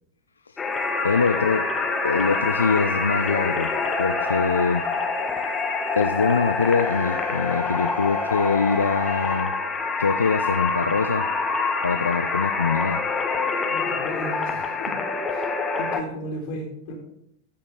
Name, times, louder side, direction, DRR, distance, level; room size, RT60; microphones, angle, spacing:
sound 1, 0.6-16.0, left 4 dB, 15° left, 1.2 m, -26 dB
sound 2, 0.7-9.4, equal, 70° right, 4.6 m, -44 dB
voice 1, 1.0-1.7 2.0-3.7 4.0-4.9 5.9-9.5 10.0-11.3 11.8-13.1, left 5 dB, 75° left, 10 dB, 0.4 m, -23 dB
voice 2, 13.7-14.9 15.3-16.9, equal, 50° left, -2 dB, 3.9 m, -35 dB
14.0 x 6.0 x 3.5 m, 0.74 s
figure-of-eight pair, 90°, 0 cm